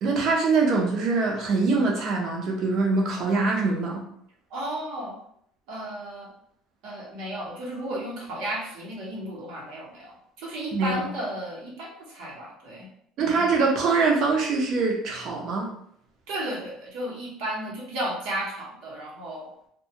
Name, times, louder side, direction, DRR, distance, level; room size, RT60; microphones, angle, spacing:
voice 1, 0.0-4.0 10.7-11.0 13.2-15.7, right 4 dB, 50° right, 0 dB, 0.7 m, -23 dB
voice 2, 4.5-5.2 5.7-6.3 6.8-12.9 13.2-13.5 16.3-19.5, right 1 dB, 70° right, -4 dB, 1.0 m, -34 dB
2.3 x 2.3 x 2.8 m, 0.69 s
cardioid pair, 150°, 0 cm